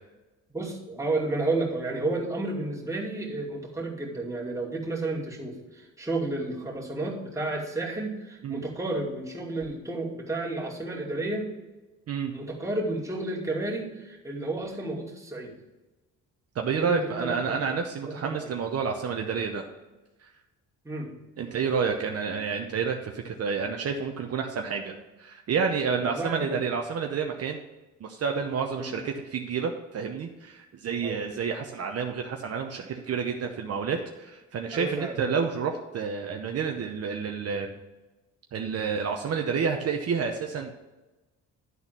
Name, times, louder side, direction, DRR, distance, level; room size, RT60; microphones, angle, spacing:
voice 1, 0.5-11.5 12.3-15.5 16.8-17.5 18.0-18.5 20.8-21.1 26.0-26.6 28.8-28.9 31.0-31.2 34.7-35.2, right 2 dB, 10° right, -4 dB, 2.5 m, -32 dB
voice 2, 16.5-19.7 20.2-20.3 21.4-27.6 28.0-37.7 38.5-40.7, right 6 dB, 55° right, 3 dB, 0.9 m, -29 dB
11.0 x 4.2 x 5.9 m, 1.1 s
cardioid pair, 90°, 30 cm